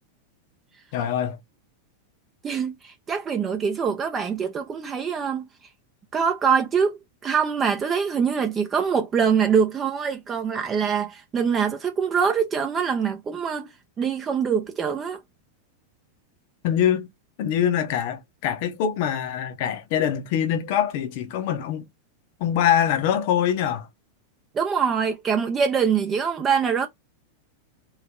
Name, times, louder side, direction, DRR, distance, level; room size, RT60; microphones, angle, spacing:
voice 1, 0.9-1.4 16.6-17.1 17.4-21.9 22.4-23.9, left 9 dB, 50° left, 0.7 m, -24 dB
voice 2, 2.4-5.5 6.1-13.7 14.0-15.2 24.5-26.9, right 6 dB, 25° right, 0.6 m, -24 dB
3.2 x 2.9 x 3.6 m
figure-of-eight pair, 90°, 0 cm